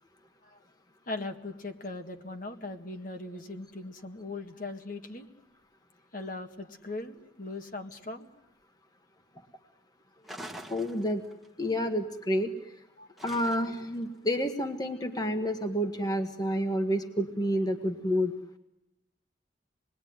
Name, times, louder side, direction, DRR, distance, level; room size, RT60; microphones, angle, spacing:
voice 1, 1.1-5.3 6.1-8.3 10.2-10.3 13.0-13.2, left 2 dB, 45° left, 5 dB, 1.9 m, -39 dB
sound 1, 10.2-11.5 13.2-13.9, right 1 dB, ahead, 1.7 m, -44 dB
voice 2, 10.7-11.2 11.6-12.5 13.2-18.3, equal, 20° left, 5 dB, 1.5 m, -29 dB
27.5 x 21.0 x 9.5 m, 0.91 s
head